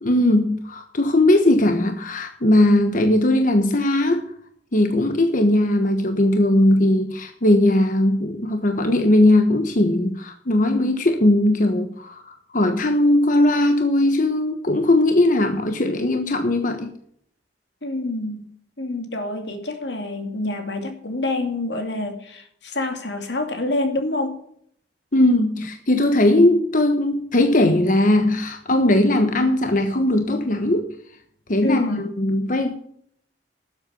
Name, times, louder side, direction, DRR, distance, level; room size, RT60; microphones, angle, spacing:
voice 1, 0.0-4.3 4.7-16.9 25.1-31.2 31.5-32.8, left 1 dB, 50° left, 6 dB, 1.2 m, -19 dB
voice 2, 17.8-18.5 18.8-24.4 31.6-32.1, left 2 dB, 80° left, 5 dB, 2.6 m, -27 dB
12.5 x 8.0 x 7.0 m, 0.65 s
head